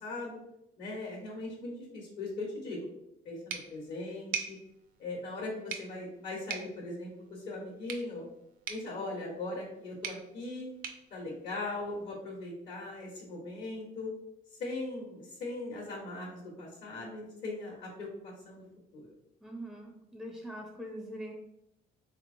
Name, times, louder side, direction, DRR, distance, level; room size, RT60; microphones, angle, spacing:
voice 1, 0.0-0.4 0.8-2.9 3.2-4.6 5.0-8.2 8.7-10.7 11.1-14.1 14.6-18.6 18.9-19.1, left 2 dB, 70° left, -4 dB, 1.0 m, -39 dB
sound 1, 3.5-12.2, right 6 dB, 55° right, 0.5 m, -44 dB
voice 2, 19.4-21.3, equal, ahead, 0 dB, 0.4 m, -42 dB
3.4 x 3.0 x 2.5 m, 0.83 s
cardioid pair, 110°, 17 cm